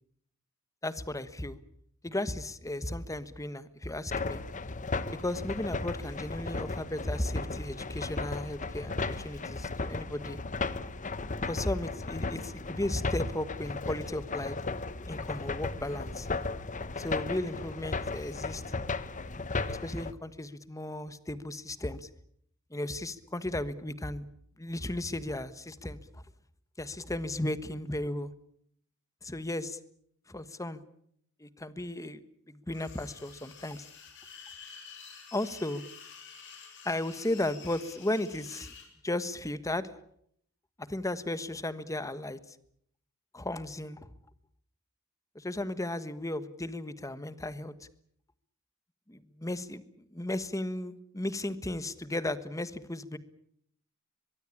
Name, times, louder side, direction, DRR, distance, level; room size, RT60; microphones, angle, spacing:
voice 1, 0.8-1.6 2.0-4.4 5.2-10.4 11.4-14.6 15.1-16.3 17.0-18.6 19.7-22.1 22.7-24.3 24.6-26.2 26.8-28.3 29.2-29.8 30.3-30.8 31.4-32.2 32.5-33.9 35.3-35.8 36.8-38.7 39.0-39.9 40.8-42.5 43.3-44.1 45.3-47.9 49.1-49.8 50.1-53.2, left 1 dB, 15° left, 14 dB, 1.3 m, -35 dB
sound 1, 4.1-20.1, left 3 dB, 35° left, 1.1 m, -35 dB
sound 2, 32.7-38.9, left 6 dB, 60° left, 7.5 m, -49 dB
23.5 x 22.5 x 8.7 m, 0.68 s
head